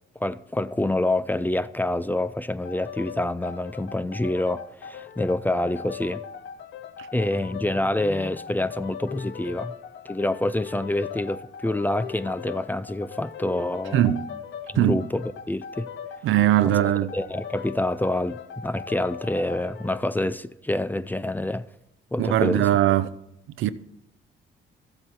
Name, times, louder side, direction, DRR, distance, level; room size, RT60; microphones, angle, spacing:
voice 1, 0.2-6.2 7.1-9.7 10.1-14.0 14.7-15.9 16.6-21.6 22.1-22.7, left 1 dB, 10° left, 0.4 m, -27 dB
sound 1, 2.6-20.1, left 7 dB, 65° left, 0.7 m, -39 dB
voice 2, 13.9-14.2 14.8-15.0 16.2-17.1 22.2-23.1 23.6-23.7, right 13 dB, 80° right, 0.6 m, -20 dB
13.5 x 7.7 x 4.3 m
cardioid pair, 90°, 20 cm